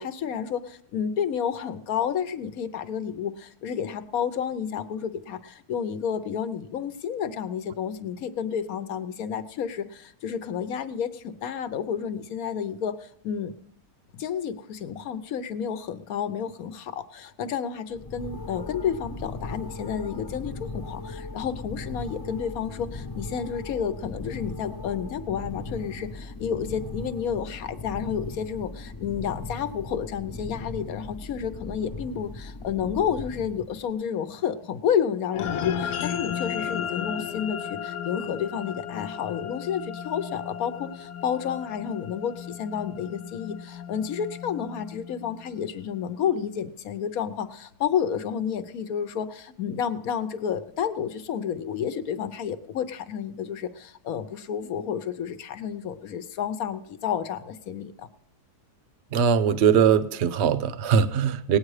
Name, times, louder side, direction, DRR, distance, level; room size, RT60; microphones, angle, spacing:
voice 1, 0.0-13.5 14.1-58.1, left 8 dB, 65° left, 12 dB, 1.2 m, -30 dB
sound 1, 17.9-33.9, left 3 dB, 35° left, 0.3 m, -38 dB
sound 2, 35.3-46.0, left 8 dB, 85° left, 1.3 m, -35 dB
voice 2, 59.1-61.6, right 7 dB, 55° right, 14 dB, 0.9 m, -21 dB
18.5 x 8.6 x 4.9 m, 0.70 s
omnidirectional pair, 1.7 m